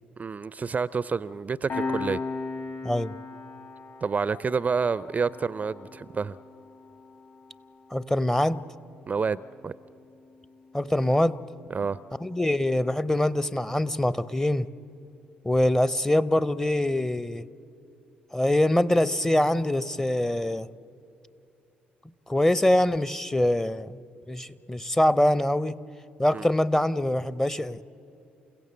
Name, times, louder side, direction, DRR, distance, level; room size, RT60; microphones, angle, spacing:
voice 1, 0.2-2.2 4.0-6.4 9.1-9.7 11.7-12.0 26.3-26.5, right 5 dB, 30° right, 0.4 m, -28 dB
Piano, 1.7-12.8, left 4 dB, 55° left, 7.4 m, -40 dB
voice 2, 2.8-3.2 7.9-8.7 10.7-11.4 12.2-14.7 15.4-17.5 18.3-20.7 22.3-24.0 24.3-25.8 26.2-27.8, left 1 dB, 10° left, 0.7 m, -24 dB
29.0 x 16.5 x 7.5 m
figure-of-eight pair, 45°, 5 cm